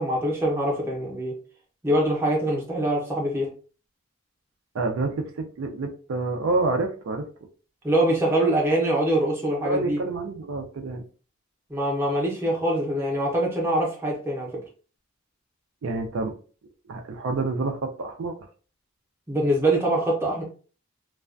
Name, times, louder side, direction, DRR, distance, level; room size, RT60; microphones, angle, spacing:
voice 1, 0.0-1.3 1.8-3.5 7.8-10.0 11.7-14.5 19.3-20.4, right 1 dB, 10° right, 0.6 m, -24 dB
voice 2, 4.7-7.3 9.6-11.0 15.8-16.4 16.9-18.3, right 3 dB, 70° right, 0.4 m, -28 dB
2.3 x 2.2 x 2.4 m
head